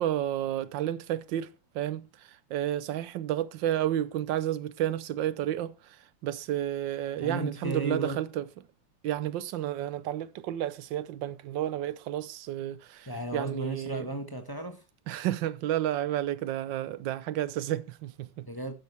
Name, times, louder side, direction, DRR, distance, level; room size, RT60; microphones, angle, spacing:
voice 1, 0.0-8.4 9.0-14.1 15.1-18.5, right 12 dB, 85° right, 1.4 m, -31 dB
voice 2, 7.2-8.2 13.1-14.8 18.4-18.7, right 1 dB, 15° left, 1.4 m, -34 dB
11.5 x 10.0 x 3.3 m
omnidirectional pair, 2.0 m